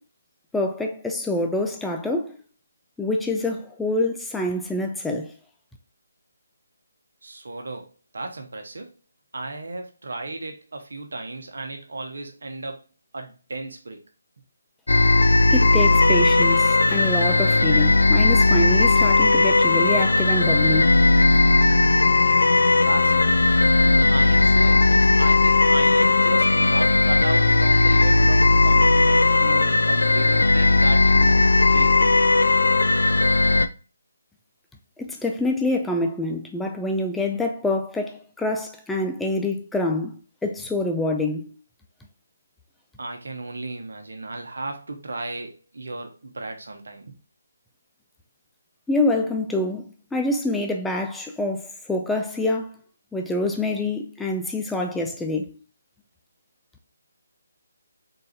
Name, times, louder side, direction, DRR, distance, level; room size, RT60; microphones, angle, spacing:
voice 1, 0.5-2.4 3.0-5.3 15.5-21.0 35.0-41.6 48.9-52.7 53.1-55.5, left 2 dB, 5° left, 0.4 m, -26 dB
voice 2, 7.2-7.9 8.1-8.9 9.3-12.8 13.1-14.0 22.9-23.7 24.1-32.1 43.0-47.1, right 2 dB, 75° right, 1.0 m, -34 dB
sound 1, 14.9-33.7, left 2 dB, 85° left, 0.3 m, -17 dB
3.9 x 2.5 x 4.0 m
figure-of-eight pair, 155°, 0 cm